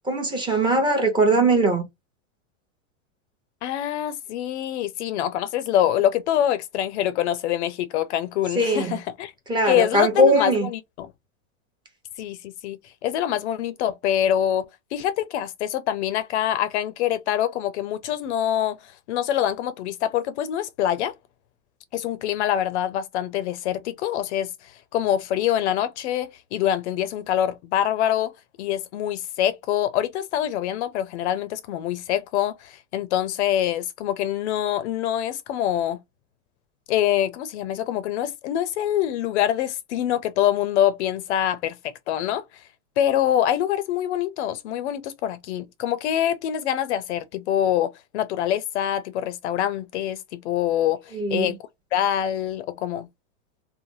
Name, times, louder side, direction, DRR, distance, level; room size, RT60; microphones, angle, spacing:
voice 1, 0.0-1.8 8.6-9.0 9.5-10.7 51.1-51.5, right 1 dB, 10° right, 0.7 m, -20 dB
voice 2, 3.6-9.3 9.6-11.1 12.2-14.6 14.9-21.1 21.9-28.3 28.6-36.0 36.9-42.4 43.0-51.6 51.9-53.1, left 11 dB, 55° left, 0.5 m, -25 dB
3.2 x 2.0 x 2.5 m
supercardioid pair, 145°, 40 cm